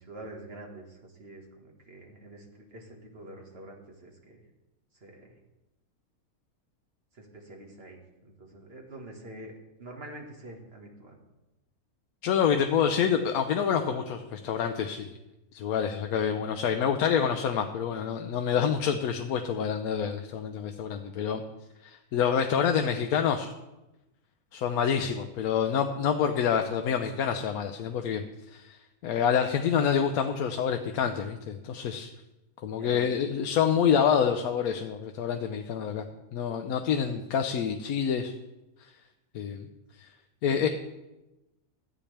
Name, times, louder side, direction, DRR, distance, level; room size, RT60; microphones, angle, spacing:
voice 1, 0.0-4.4 4.9-5.3 7.1-9.5 9.8-11.2 16.2-16.4 32.8-33.6, right 1 dB, 45° right, 1 dB, 1.8 m, -46 dB
voice 2, 12.2-15.1 15.5-21.4 21.8-23.5 24.5-28.2 28.5-32.1 32.6-36.0 36.3-38.3 39.3-39.7 40.4-40.7, left 7 dB, 85° left, 6 dB, 1.1 m, -27 dB
13.5 x 8.5 x 3.4 m, 0.99 s
omnidirectional pair, 1.5 m